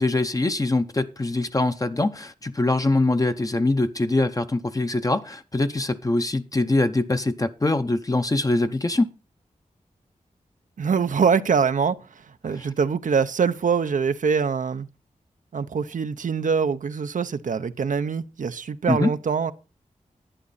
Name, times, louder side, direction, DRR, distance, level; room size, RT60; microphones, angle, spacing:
voice 1, 0.0-9.1 12.6-12.7 18.9-19.1, left 2 dB, 25° left, 0.7 m, -23 dB
voice 2, 10.8-14.9 15.5-19.5, right 6 dB, 70° right, 0.7 m, -24 dB
11.5 x 9.6 x 4.1 m
wide cardioid pair, 80°, 14 cm